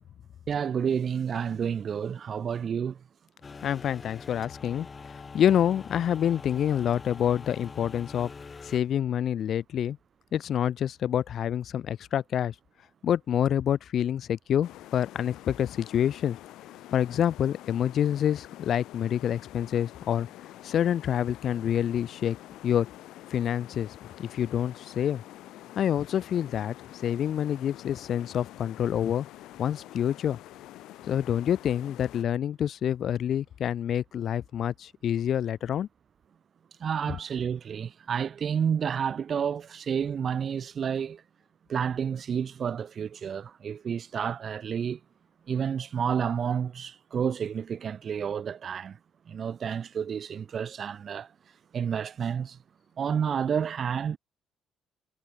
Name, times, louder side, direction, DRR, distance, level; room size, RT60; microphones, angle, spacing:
voice 1, 0.5-3.0 36.8-41.2 41.7-45.0 45.5-49.0 49.3-51.3 51.7-52.6 53.0-54.2, right 7 dB, 35° right, 0.4 m, -30 dB
sound 1, 3.4-8.8, left 4 dB, 25° left, 2.0 m, -44 dB
voice 2, 3.6-8.3 8.6-10.0 10.3-12.5 13.0-16.4 16.9-20.3 20.6-22.4 22.6-22.9 23.3-23.9 24.2-25.2 25.8-26.8 27.0-29.3 29.6-30.4 31.1-35.9 37.1-37.2, left 9 dB, 50° left, 0.3 m, -27 dB
sound 2, 14.6-32.2, left 15 dB, 80° left, 7.3 m, -47 dB
cardioid pair, 155°, 0 cm